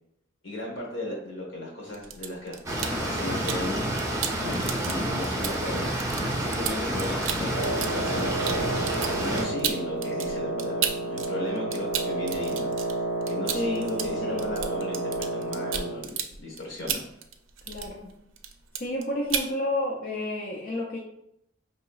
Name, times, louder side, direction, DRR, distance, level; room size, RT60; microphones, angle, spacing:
voice 1, 0.4-3.8 4.4-5.9 6.3-7.5 7.9-8.6 9.1-13.0 13.3-17.0, left 1 dB, 80° left, -2 dB, 1.2 m, -35 dB
sound 1, 1.9-3.7 4.0-11.3 11.6-18.1 18.4-19.0 19.3-19.5, right 8 dB, 85° right, 0.4 m, -33 dB
sound 2, 2.7-9.4, right 1 dB, 15° right, 0.7 m, -29 dB
Wind instrument woodwind instrument, 7.5-16.0, right 2 dB, 20° left, 1.1 m, -31 dB
voice 2, 13.5-14.5 17.7-18.1 18.8-21.0, left 2 dB, 45° left, -2 dB, 0.5 m, -31 dB
4.7 x 2.9 x 2.3 m, 0.78 s
head